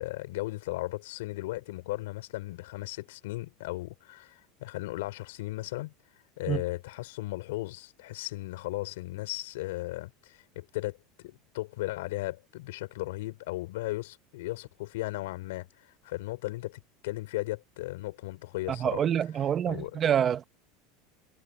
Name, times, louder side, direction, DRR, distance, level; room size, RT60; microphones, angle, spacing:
voice 1, 0.0-5.9 6.4-19.1 19.7-20.0, left 19 dB, 85° left, 6.4 m, -36 dB
voice 2, 18.7-20.4, right 9 dB, 25° right, 1.4 m, -27 dB
supercardioid pair, 150°, 0 cm